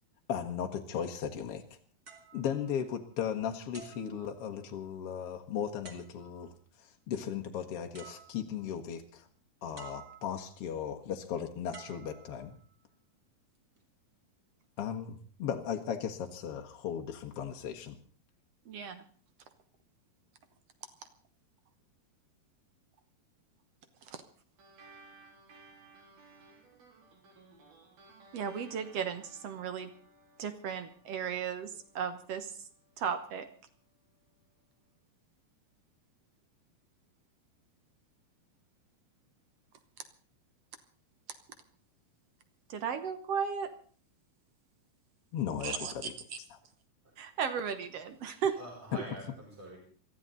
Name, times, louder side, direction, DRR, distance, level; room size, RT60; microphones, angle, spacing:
voice 1, 0.3-1.6 2.3-6.5 7.1-9.3 9.6-12.5 14.8-18.0 45.3-46.1, left 8 dB, 60° left, 3 dB, 1.6 m, -36 dB
sound 1, 2.1-3.3 3.7-4.9 5.8-6.5 7.6-7.7 7.9-8.8 9.8-10.6 11.7-12.8 13.5-13.8, right 5 dB, 30° right, 2.6 m, -53 dB
voice 2, 18.7-19.0 24.1-24.2 28.3-29.9 30.4-32.7 33.0-33.5 42.7-43.7 45.6-46.1 47.2-48.5, right 7 dB, 65° right, 10 dB, 1.6 m, -35 dB
sound 2, 24.6-33.4, right 3 dB, 85° right, 6.1 m, -59 dB
voice 3, 47.0-47.4 48.2-49.8, right 1 dB, 45° right, -3 dB, 6.8 m, -47 dB
23.0 x 14.5 x 4.0 m, 0.43 s
omnidirectional pair, 4.2 m